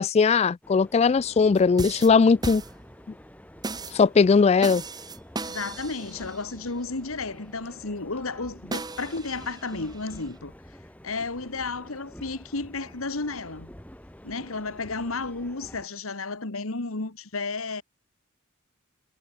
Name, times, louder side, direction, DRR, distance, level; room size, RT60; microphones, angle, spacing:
voice 1, 0.0-2.6 3.9-4.8, left 5 dB, 30° left, 0.3 m, -19 dB
sound 1, 0.6-15.9, equal, 5° left, 3.7 m, -48 dB
sound 2, 1.6-3.1 3.6-4.0 4.6-6.5 8.7-10.3, right 3 dB, 20° right, 1.4 m, -36 dB
voice 2, 5.5-10.5 11.0-13.8 14.2-17.8, left 3 dB, 80° left, 1.8 m, -32 dB
head